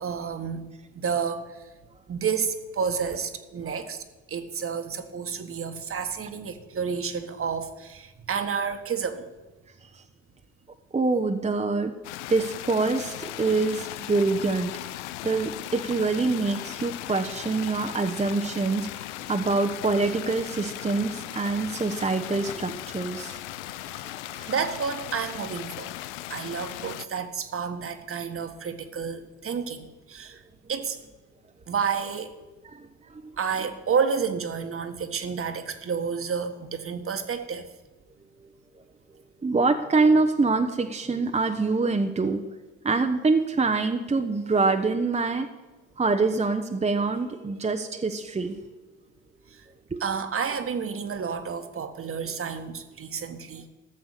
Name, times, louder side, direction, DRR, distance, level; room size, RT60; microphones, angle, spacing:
voice 1, 0.0-1.7 2.1-9.3 24.5-25.9 26.3-30.4 30.7-31.0 31.7-32.3 33.4-37.7 49.5-49.7 50.0-53.7, right 6 dB, 40° right, 8 dB, 1.5 m, -30 dB
voice 2, 10.9-11.9 12.3-23.4 23.8-24.5 32.7-32.8 39.4-42.4 42.8-45.5 46.0-48.6 49.9-50.0, right 3 dB, 20° right, 5 dB, 0.9 m, -25 dB
sound 1, 12.0-27.1, left 15 dB, 85° left, 0.5 m, -38 dB
14.0 x 6.7 x 6.7 m, 1.2 s
hypercardioid pair, 60°, 34 cm